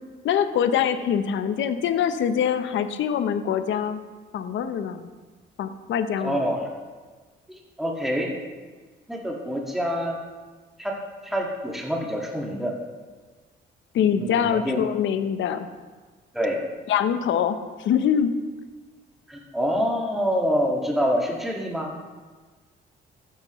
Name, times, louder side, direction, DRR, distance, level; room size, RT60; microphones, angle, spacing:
voice 1, 0.2-4.0 4.3-5.1 5.6-6.5 13.9-15.7 16.9-18.3, left 8 dB, 70° left, 10 dB, 0.7 m, -24 dB
voice 2, 6.2-6.7 7.5-8.3 9.1-10.2 10.8-11.0 11.2-12.8 14.2-14.8 16.3-16.6 19.3-21.9, equal, ahead, -1 dB, 1.8 m, -26 dB
12.5 x 9.5 x 3.1 m, 1.4 s
cardioid pair, 90°, 20 cm